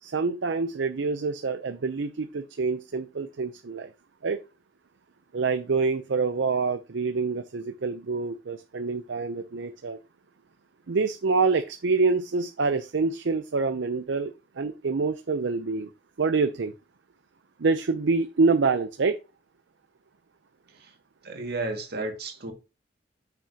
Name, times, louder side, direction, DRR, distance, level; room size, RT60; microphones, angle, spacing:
voice 1, 0.0-3.9 4.2-4.4 5.3-10.0 10.9-15.9 16.2-16.7 17.6-19.2, right 4 dB, 80° right, 0.6 m, -26 dB
voice 2, 21.2-22.5, right 2 dB, 60° right, 2.0 m, -33 dB
8.7 x 5.8 x 2.8 m
head